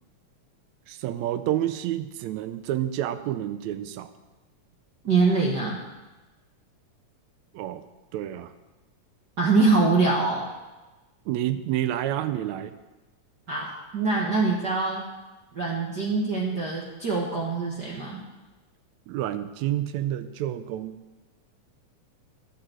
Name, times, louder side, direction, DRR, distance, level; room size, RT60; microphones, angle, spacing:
voice 1, 0.9-4.1 7.5-7.8 8.1-8.5 11.3-12.7 19.1-21.0, right 12 dB, 75° right, 11 dB, 1.9 m, -29 dB
voice 2, 5.0-5.8 9.4-10.5 13.5-15.0 15.5-18.2, right 3 dB, 50° right, -3 dB, 1.3 m, -24 dB
11.0 x 7.9 x 7.7 m, 1.1 s
omnidirectional pair, 3.5 m